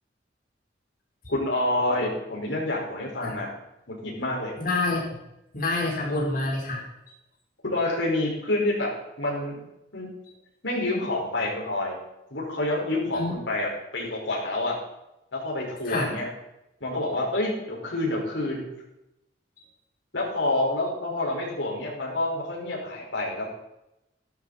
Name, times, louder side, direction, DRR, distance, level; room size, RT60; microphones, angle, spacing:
voice 1, 1.3-3.5 3.9-4.5 7.6-8.9 9.2-9.6 9.9-10.1 10.6-12.0 12.3-14.8 15.3-16.3 16.8-18.7 20.1-23.5, left 2 dB, 80° left, -3 dB, 5.3 m, -28 dB
voice 2, 4.6-5.0 5.5-6.8 13.1-13.4 15.8-16.1, left 2 dB, 50° left, -2 dB, 4.4 m, -27 dB
14.5 x 12.5 x 4.4 m, 0.87 s
head